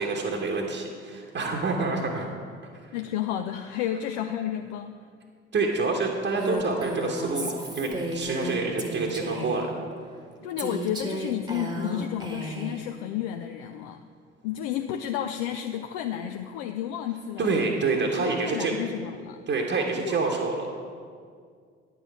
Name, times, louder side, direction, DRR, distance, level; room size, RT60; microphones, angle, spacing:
voice 1, 0.0-2.3 5.5-9.7 17.4-18.7 19.5-20.8, right 3 dB, 30° right, 0 dB, 1.1 m, -27 dB
voice 2, 2.9-5.0 10.4-14.0 14.4-17.5 18.0-19.4 20.0-20.2, left 10 dB, 60° left, 6 dB, 0.5 m, -31 dB
Female speech woman speaking, 6.4-9.7 10.6-12.8, right 1 dB, 10° right, 1.2 m, -33 dB
9.7 x 7.0 x 4.8 m, 2.1 s
figure-of-eight pair, 50°, 35 cm